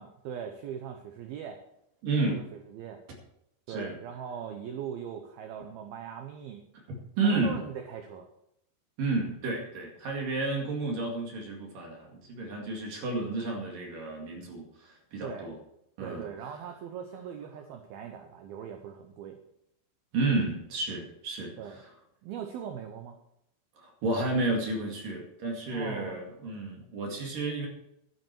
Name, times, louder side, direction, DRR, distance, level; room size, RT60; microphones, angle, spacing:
voice 1, 0.0-1.6 2.2-3.0 3.7-6.6 7.2-8.3 15.2-15.5 16.0-19.4 21.6-21.8 22.2-23.2 25.7-26.2, right 8 dB, 75° right, 5 dB, 2.3 m, -40 dB
voice 2, 2.0-2.4 3.7-4.0 7.2-7.6 9.0-15.6 16.0-16.2 20.1-21.8 23.8-27.7, right 3 dB, 55° right, 1 dB, 3.3 m, -31 dB
12.0 x 11.0 x 4.6 m, 0.79 s
omnidirectional pair, 5.5 m